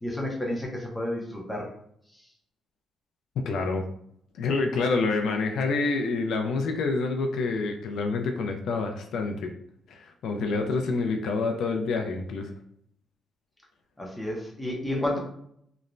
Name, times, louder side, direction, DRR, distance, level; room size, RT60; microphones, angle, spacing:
voice 1, 0.0-1.7 10.3-10.7 14.0-15.2, left 1 dB, 5° left, -2 dB, 0.6 m, -31 dB
voice 2, 3.4-3.8 4.3-9.5 9.9-12.5, left 3 dB, 70° left, 4 dB, 0.3 m, -27 dB
3.0 x 2.0 x 2.5 m, 0.69 s
cardioid pair, 170°, 0 cm